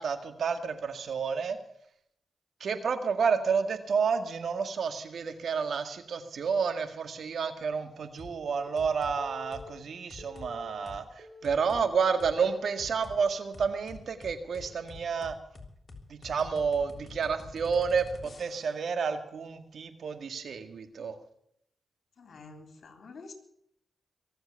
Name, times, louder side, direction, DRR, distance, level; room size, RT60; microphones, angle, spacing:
voice 1, 0.0-1.6 2.6-15.3 16.1-21.2, right 5 dB, 75° right, 8 dB, 1.9 m, -30 dB
sound 1, 8.2-8.4 8.8-9.2 9.5-9.7 10.1-10.5 10.9-11.0 11.4-11.8 12.2-12.3 12.8-13.2 13.5-18.8, left 3 dB, 50° left, 3.3 m, -47 dB
Telephone, 8.5-8.7 9.2-9.7 10.2-10.7 11.2-11.7 12.2-12.7 13.2-13.5 14.5-14.7, left 2 dB, 55° right, 5.4 m, -49 dB
voice 2, 22.2-23.3, left 3 dB, 70° left, 5 dB, 3.7 m, -48 dB
22.5 x 8.0 x 6.9 m, 0.72 s
cardioid pair, 50°, 0 cm